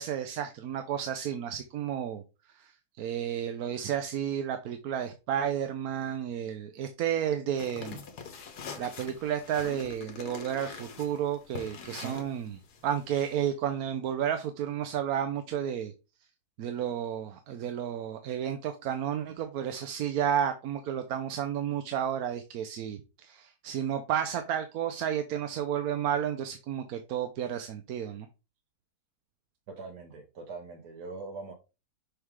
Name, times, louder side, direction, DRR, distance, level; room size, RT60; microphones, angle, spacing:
voice 1, 0.0-2.2 2.6-2.7 3.0-8.0 8.8-12.6 12.8-15.9 16.6-28.3, right 9 dB, 75° right, 1.1 m, -32 dB
sound 1, 7.5-13.4, left 5 dB, 85° left, 1.7 m, -44 dB
voice 2, 29.7-31.5, right 4 dB, 90° right, 1.5 m, -42 dB
6.5 x 4.7 x 3.6 m
omnidirectional pair, 1.7 m